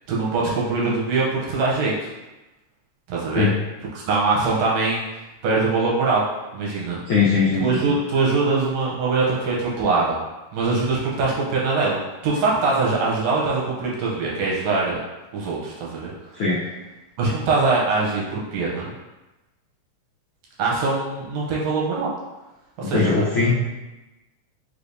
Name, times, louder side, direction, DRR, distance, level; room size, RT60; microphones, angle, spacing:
voice 1, 0.1-2.1 3.1-3.5 4.1-5.0 5.4-6.2 6.5-7.0 7.6-10.2 10.5-15.0 15.3-16.1 17.2-18.9 20.6-22.1 22.8-23.1, right 3 dB, 70° right, -5 dB, 1.8 m, -22 dB
voice 2, 7.1-7.9 16.3-16.6 22.8-23.5, left 4 dB, 85° left, -7 dB, 1.2 m, -20 dB
4.8 x 3.3 x 2.6 m, 1.1 s
omnidirectional pair, 3.4 m